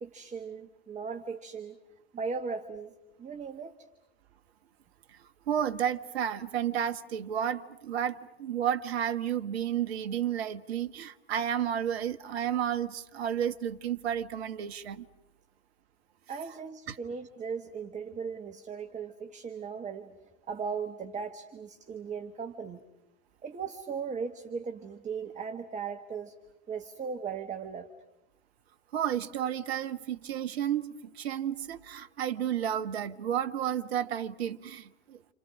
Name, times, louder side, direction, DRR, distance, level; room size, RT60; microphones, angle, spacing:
voice 1, 0.0-1.8 2.1-2.9 3.2-3.7 16.3-20.1 20.5-22.8 23.4-26.3 26.7-27.9, right 5 dB, 20° right, 1.5 m, -37 dB
voice 2, 5.5-15.1 16.9-17.0 28.9-30.9 31.1-35.2, right 9 dB, 65° right, 1.3 m, -31 dB
30.0 x 28.5 x 6.2 m
figure-of-eight pair, 80°, 34 cm